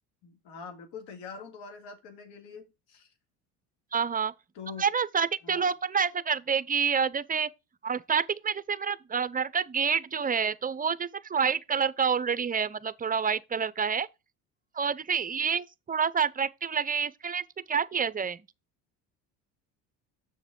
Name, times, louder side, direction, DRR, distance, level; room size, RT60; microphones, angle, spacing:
voice 1, 0.2-3.1 4.5-4.8 5.4-5.7, left 5 dB, 75° left, 2.3 m, -44 dB
voice 2, 3.9-4.3 4.8-7.5 7.8-14.1 14.7-18.5, right 6 dB, 20° right, 0.6 m, -28 dB
7.1 x 6.5 x 3.7 m
supercardioid pair, 75°, 42 cm